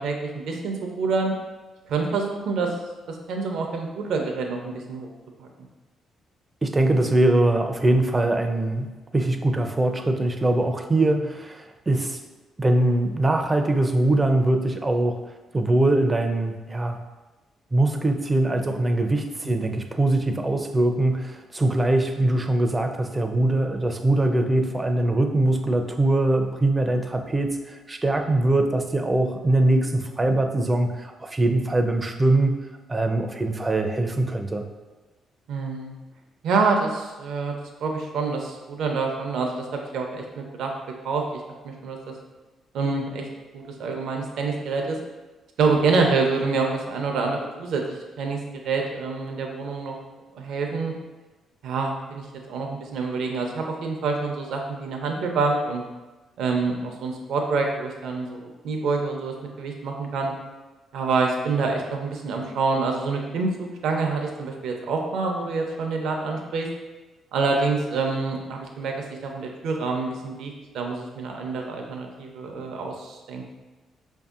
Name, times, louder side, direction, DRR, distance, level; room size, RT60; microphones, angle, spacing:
voice 1, 0.0-1.3 1.9-2.7 3.1-5.1 5.4-5.5 11.0-11.1 19.4-19.7 30.2-30.4 35.5-36.0 36.4-37.5 37.8-40.7 41.0-41.2 41.6-42.1 42.7-43.3 43.5-45.0 45.6-48.4 48.6-50.0 50.3-50.9 51.6-55.8 56.4-60.3 60.9-66.7 67.3-68.9 69.2-73.5, right 4 dB, 75° right, 2 dB, 0.5 m, -27 dB
voice 2, 6.6-12.2 12.6-17.0 17.7-34.6, right 2 dB, 20° right, 5 dB, 0.4 m, -22 dB
5.0 x 2.6 x 2.4 m, 1.2 s
cardioid pair, 90°, 0 cm